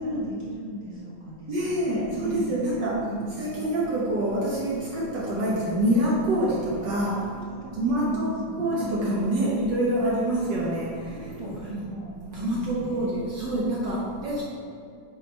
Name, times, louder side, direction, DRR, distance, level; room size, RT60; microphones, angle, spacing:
voice 1, 0.0-3.4 7.0-9.3 11.1-11.5 11.9-14.1, right 1 dB, 40° right, -8 dB, 1.8 m, -37 dB
voice 2, 1.5-3.0 3.4-7.2 7.8-8.3 8.6-10.9 11.7-11.8 12.3-14.4, right 1 dB, 65° right, -6 dB, 1.7 m, -26 dB
8.1 x 3.6 x 5.1 m, 2.4 s
omnidirectional pair, 2.2 m